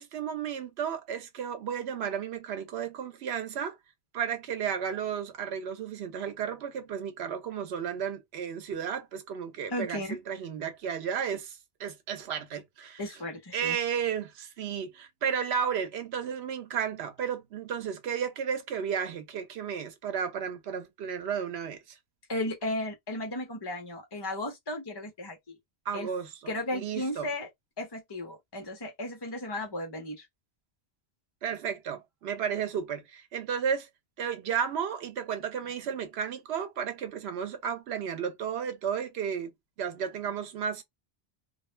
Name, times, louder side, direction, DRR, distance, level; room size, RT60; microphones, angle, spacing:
voice 1, 0.0-3.8 4.1-13.0 13.5-22.0 25.9-27.3 31.4-33.9 34.2-40.8, right 7 dB, 85° right, 0.9 m, -33 dB
voice 2, 9.7-10.2 13.0-13.8 22.3-25.4 25.9-26.1 26.5-27.5 27.8-30.3, left 1 dB, 30° left, 0.5 m, -35 dB
2.2 x 2.0 x 3.1 m
omnidirectional pair, 1.1 m